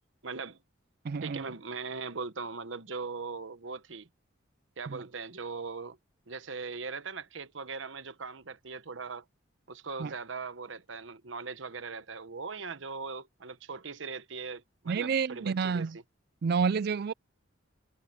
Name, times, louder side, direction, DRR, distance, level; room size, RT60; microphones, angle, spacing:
voice 1, 0.2-0.6 1.2-4.1 4.8-6.0 6.3-9.2 9.7-16.0, right 4 dB, 75° right, 1.1 m, -40 dB
voice 2, 1.0-1.5 4.9-5.0 10.0-10.1 14.9-16.0 16.4-17.1, right 5 dB, 50° right, 0.4 m, -29 dB
head